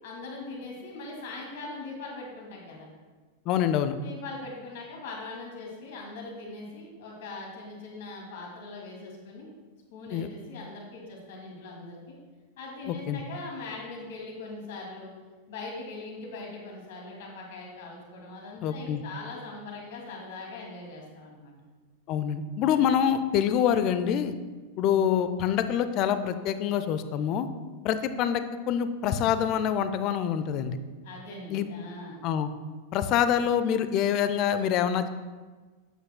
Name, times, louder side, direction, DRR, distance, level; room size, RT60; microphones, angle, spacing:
voice 1, 0.0-2.9 4.0-9.5 9.9-12.2 12.6-15.1 15.5-21.5 31.0-32.2, left 3 dB, 55° left, -1 dB, 2.4 m, -41 dB
voice 2, 3.5-3.9 10.1-10.3 12.9-13.2 18.6-19.0 22.1-24.3 24.8-27.5 27.8-30.8 31.5-31.7 32.2-32.5 32.9-35.1, left 9 dB, 40° left, 11 dB, 0.6 m, -26 dB
12.0 x 8.7 x 2.2 m, 1.4 s
figure-of-eight pair, 90°, 0 cm